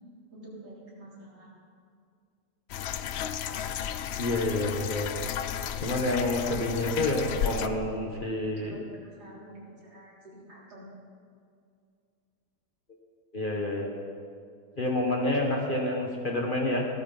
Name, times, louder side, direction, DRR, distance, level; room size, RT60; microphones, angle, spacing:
voice 1, 0.3-1.5 8.5-10.9, right 1 dB, 75° right, -6 dB, 4.1 m, -48 dB
sound 1, 2.7-7.7, left 10 dB, 90° left, 0.5 m, -33 dB
voice 2, 4.2-5.1 5.8-8.8 13.3-13.9 14.8-16.9, left 1 dB, 35° left, 0 dB, 1.4 m, -28 dB
16.0 x 13.5 x 4.0 m, 2.3 s
omnidirectional pair, 1.7 m